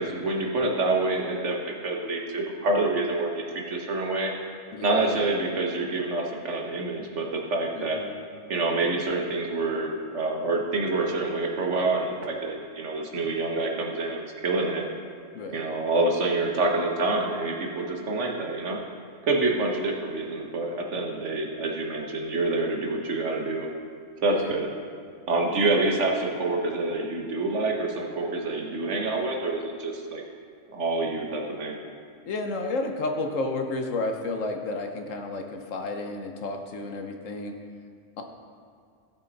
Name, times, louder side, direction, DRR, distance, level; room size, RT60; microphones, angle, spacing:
voice 1, 0.0-4.3 4.8-8.0 8.5-14.9 15.5-18.8 19.2-23.7 24.2-24.7 25.3-30.2 30.7-31.7, right 2 dB, 65° right, 1 dB, 1.4 m, -27 dB
voice 2, 4.7-5.2 7.8-8.2 15.3-15.7 24.3-24.6 32.3-37.5 38.2-38.3, left 2 dB, 75° left, 4 dB, 1.3 m, -31 dB
16.0 x 6.2 x 4.1 m, 2.2 s
omnidirectional pair, 1.4 m